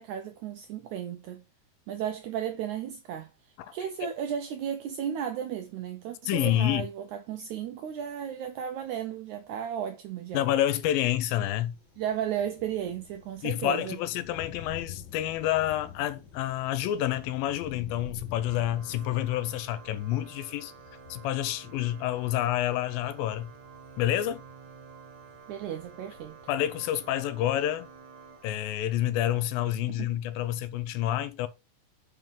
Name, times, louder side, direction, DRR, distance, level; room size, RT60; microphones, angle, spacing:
voice 1, 0.0-1.4 1.9-3.3 3.7-10.4 12.0-14.0 25.5-26.3 29.9-30.1, right 9 dB, 90° right, 1.7 m, -34 dB
voice 2, 6.3-6.9 10.3-11.8 13.4-20.7 21.1-23.5 24.0-24.4 26.5-27.9 28.4-31.5, left 12 dB, 85° left, 2.4 m, -28 dB
Thunder, 11.1-28.4, left 6 dB, 40° left, 2.3 m, -50 dB
Organ, 18.3-29.1, right 5 dB, 35° right, 1.9 m, -50 dB
5.5 x 5.4 x 3.6 m
omnidirectional pair, 4.1 m